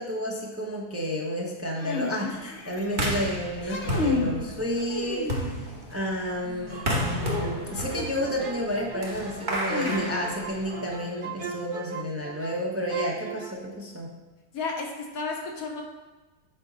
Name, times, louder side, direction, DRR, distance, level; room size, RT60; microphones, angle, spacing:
voice 1, 0.0-5.3 5.9-14.1, equal, 15° right, -2 dB, 0.6 m, -31 dB
sound 1, 1.8-3.0 3.5-4.4 4.9-5.8 7.8-7.9 9.7-10.5, left 4 dB, 55° left, 1.0 m, -31 dB
sound 2, 2.9-11.0, equal, 35° right, 1.2 m, -32 dB
voice 2, 6.4-7.1 14.5-15.8, left 3 dB, 75° left, 1 dB, 1.4 m, -34 dB
sound 3, 6.9-12.6 12.9-13.5, right 5 dB, 50° right, 0.6 m, -38 dB
7.7 x 5.1 x 4.0 m, 1.2 s
omnidirectional pair, 1.5 m